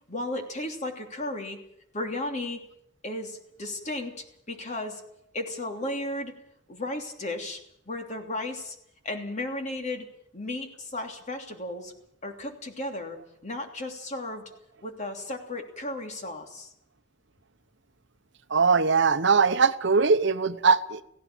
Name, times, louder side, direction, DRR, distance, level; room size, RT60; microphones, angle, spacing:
voice 1, 0.1-1.6 1.9-2.7 3.0-5.0 5.3-6.4 6.7-8.8 9.0-10.1 10.3-11.9 12.2-14.5 14.8-16.7, left 2 dB, 40° left, 4 dB, 3.1 m, -34 dB
voice 2, 18.5-21.0, right 5 dB, 65° right, 12 dB, 0.9 m, -21 dB
17.5 x 16.5 x 9.0 m, 0.73 s
head